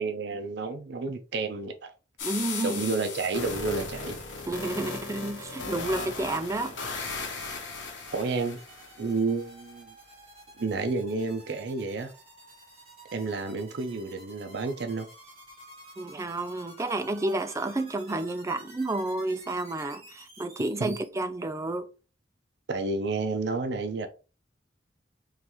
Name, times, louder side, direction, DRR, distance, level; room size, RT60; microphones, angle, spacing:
voice 1, 0.0-1.9 2.6-4.2 8.1-8.6 9.0-10.0 10.6-12.1 13.1-15.1 20.8-21.0 22.7-24.1, right 3 dB, 65° right, 0.5 m, -30 dB
sound 1, 2.2-9.2, left 4 dB, 90° left, 1.0 m, -37 dB
voice 2, 2.2-2.8 4.5-7.1 16.0-21.9, right 2 dB, 15° right, 0.4 m, -31 dB
sound 2, 2.5-21.1, right 2 dB, 35° right, 1.9 m, -52 dB
3.8 x 3.1 x 3.0 m
head